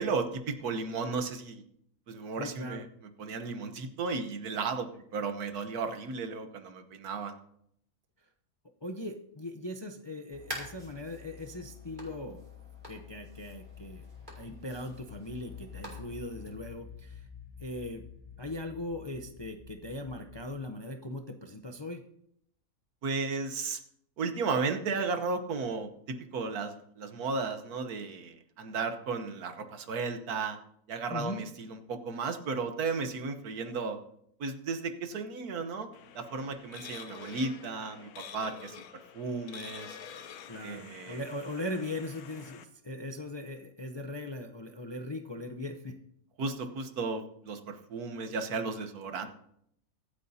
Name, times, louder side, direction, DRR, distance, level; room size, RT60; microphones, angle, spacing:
voice 1, 0.0-1.6 2.1-2.8 3.2-7.4 23.0-23.8 24.2-30.6 30.9-34.0 34.4-35.9 36.1-38.8 39.1-40.0 40.6-41.2 46.4-49.3, right 4 dB, 80° right, 8 dB, 1.6 m, -34 dB
voice 2, 2.4-2.8 8.8-12.5 12.9-14.1 14.4-17.3 17.6-18.1 18.4-22.0 31.1-31.4 40.5-46.0, left 1 dB, 30° left, 5 dB, 0.5 m, -39 dB
sound 1, 10.3-16.6, left 2 dB, 30° right, 3.4 m, -46 dB
sound 2, 13.5-20.5, left 6 dB, 10° right, 4.0 m, -50 dB
sound 3, 35.9-42.6, left 8 dB, 80° left, 1.3 m, -48 dB
24.0 x 8.2 x 2.8 m, 0.72 s
omnidirectional pair, 1.6 m